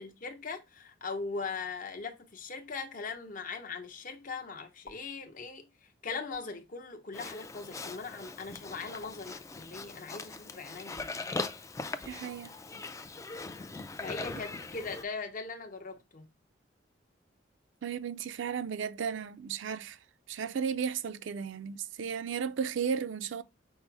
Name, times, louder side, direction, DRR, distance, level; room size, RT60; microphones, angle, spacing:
voice 1, 0.0-5.7 6.0-11.5 13.9-16.3, left 4 dB, 45° left, 0.8 m, -40 dB
sound 1, 4.8-5.0 6.3-6.5 7.8-7.9 9.0-9.2, left 4 dB, 90° left, 0.7 m, -48 dB
Livestock farm animals working animals, 7.1-15.0, left 3 dB, 15° left, 0.3 m, -40 dB
voice 2, 12.0-12.5 17.8-20.0 20.3-23.4, right 7 dB, 80° right, 0.4 m, -34 dB
5.4 x 2.0 x 4.6 m
head